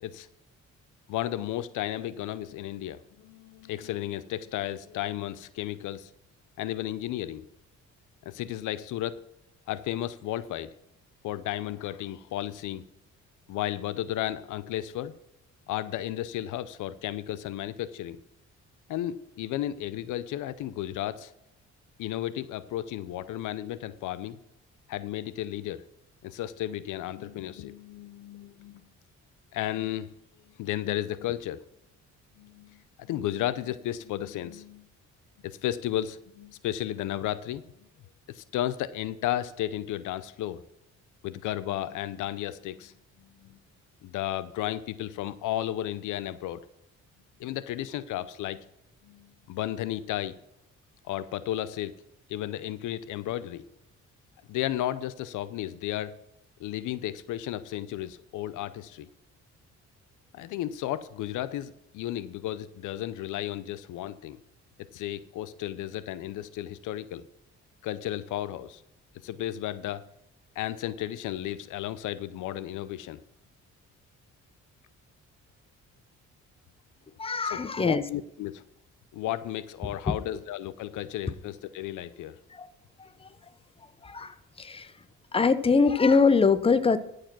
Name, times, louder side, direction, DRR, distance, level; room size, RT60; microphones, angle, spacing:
voice 1, 1.1-6.1 6.6-7.4 8.2-9.2 9.7-10.7 11.2-12.8 13.5-15.1 15.7-18.2 18.9-21.3 22.0-24.4 24.9-25.8 26.2-28.8 29.5-30.1 30.6-31.6 32.4-32.8 33.1-34.8 35.4-37.6 38.3-40.6 41.2-42.9 43.2-43.6 44.0-46.6 47.4-48.6 49.0-50.3 51.1-52.0 52.3-53.6 54.5-56.1 56.6-59.1 60.3-64.4 64.9-67.3 67.8-68.8 69.2-70.0 70.6-73.2 77.4-78.6 79.1-82.4, left 13 dB, 85° left, 15 dB, 0.6 m, -33 dB
voice 2, 77.2-78.0 82.5-82.7 84.0-84.9 85.3-87.0, left 4 dB, 20° left, 12 dB, 0.7 m, -23 dB
13.0 x 5.0 x 6.1 m, 0.80 s
cardioid pair, 90°, 30 cm